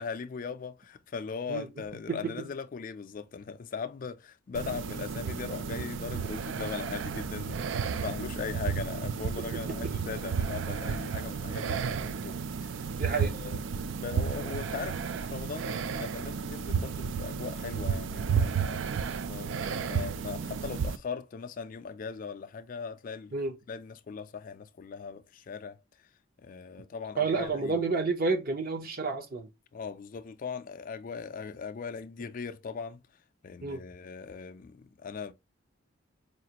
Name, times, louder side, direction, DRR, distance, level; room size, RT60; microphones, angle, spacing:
voice 1, 0.0-12.9 13.2-13.7 14.0-18.8 19.3-25.8 26.4-27.8 29.7-33.0 33.4-35.3, left 5 dB, 40° left, 0.3 m, -39 dB
voice 2, 2.1-2.5 9.5-9.9 11.8-12.1 12.9-13.3 23.3-23.6 27.2-29.5 33.6-33.8, right 4 dB, 45° right, 0.7 m, -30 dB
sound 1, 4.5-21.0, right 6 dB, 65° right, 0.3 m, -32 dB
4.8 x 2.5 x 2.8 m
head